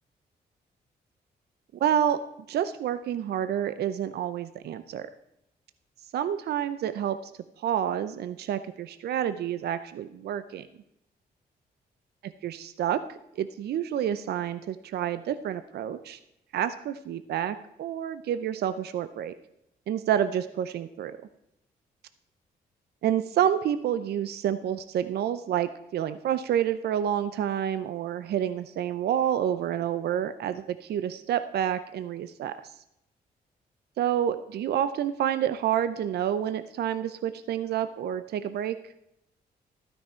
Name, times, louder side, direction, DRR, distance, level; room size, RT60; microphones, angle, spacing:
voice 1, 1.7-2.2 2.5-5.1 6.1-7.2 7.6-10.7 12.4-16.2 16.5-19.3 19.9-21.2 23.0-32.7 34.0-38.8, right 10 dB, 75° right, 12 dB, 0.6 m, -28 dB
12.5 x 9.8 x 4.4 m, 0.81 s
cardioid pair, 80°, 17 cm